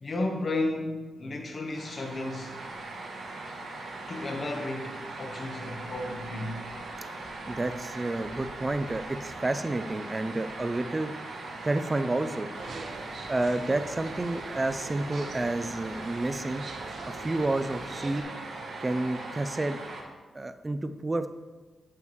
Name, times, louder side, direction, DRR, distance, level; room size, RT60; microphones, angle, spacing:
voice 1, 0.0-2.5 4.1-6.6, left 2 dB, 40° left, 3 dB, 1.1 m, -33 dB
sound 1, 1.7-20.0, right 2 dB, 75° right, 1.4 m, -40 dB
voice 2, 7.5-11.1 11.6-12.5 13.3-16.7 17.1-18.3 18.8-19.8 20.3-21.3, right 2 dB, 20° right, 10 dB, 0.4 m, -30 dB
sound 2, 12.5-18.2, right 3 dB, 55° right, 1.0 m, -44 dB
9.3 x 7.9 x 3.1 m, 1.3 s
wide cardioid pair, 145°, 0 cm